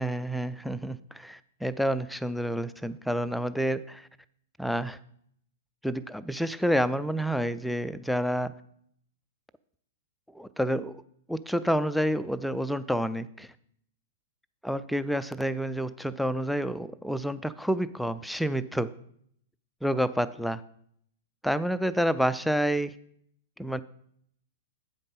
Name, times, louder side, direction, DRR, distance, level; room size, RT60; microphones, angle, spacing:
voice 1, 0.0-4.1 4.6-5.0 5.8-8.5 10.3-11.0 11.3-13.5 14.6-18.9 19.8-20.6 21.4-22.9 23.6-23.8, equal, ahead, 13 dB, 0.3 m, -29 dB
8.3 x 5.2 x 5.3 m, 0.67 s
figure-of-eight pair, 105°, 0 cm